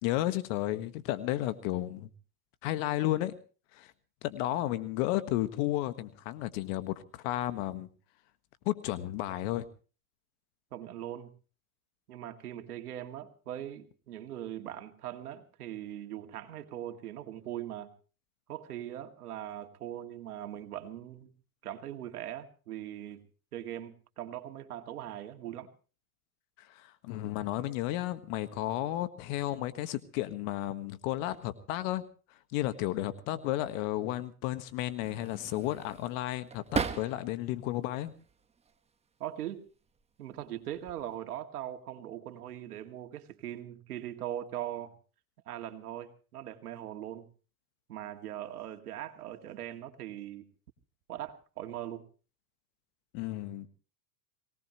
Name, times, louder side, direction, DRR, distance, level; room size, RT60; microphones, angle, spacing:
voice 1, 0.0-2.1 2.6-3.4 3.7-3.9 4.2-7.9 8.6-9.7 26.6-32.0 32.3-38.1 53.1-53.7, left 15 dB, 60° left, 12 dB, 1.6 m, -33 dB
voice 2, 10.7-11.3 12.1-17.9 18.5-21.3 21.6-23.2 23.5-25.7 39.2-39.6 40.2-44.9 45.5-47.3 47.9-50.4 51.1-52.0, right 12 dB, 85° right, 7 dB, 2.3 m, -40 dB
sound 1, 35.0-37.5 37.9-38.8 39.7-40.0 40.4-41.2, right 5 dB, 15° right, 1.3 m, -38 dB
24.0 x 18.5 x 3.1 m, 0.37 s
hypercardioid pair, 115°, 44 cm